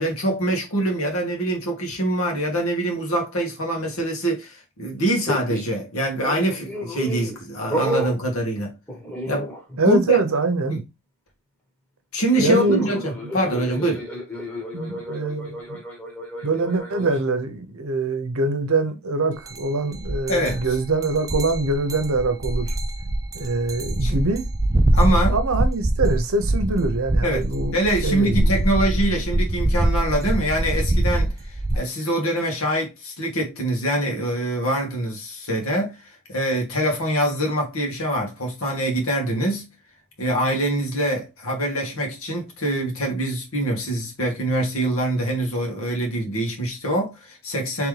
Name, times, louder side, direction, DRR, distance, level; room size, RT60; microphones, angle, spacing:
voice 1, 0.0-8.7 9.3-9.5 9.8-10.2 10.7-10.8 12.1-14.0 20.3-20.6 24.0-24.2 24.9-25.4 27.2-27.5 27.7-31.3 31.7-39.7 40.2-47.9, right 1 dB, 70° left, 1.6 m, -24 dB
sound 1, 5.3-5.8 6.2-7.4 7.7-8.2 8.9-9.8 10.0-10.3 12.4-17.2, equal, 10° left, 1.3 m, -31 dB
voice 2, 9.8-10.8 12.4-12.9 14.7-15.8 16.4-22.8 23.3-24.4 25.3-27.8 28.0-28.6, right 3 dB, 70° right, 0.8 m, -24 dB
sound 2, 19.5-19.6 19.9-31.8, right 1 dB, 15° right, 0.4 m, -23 dB
3.7 x 3.3 x 3.2 m
head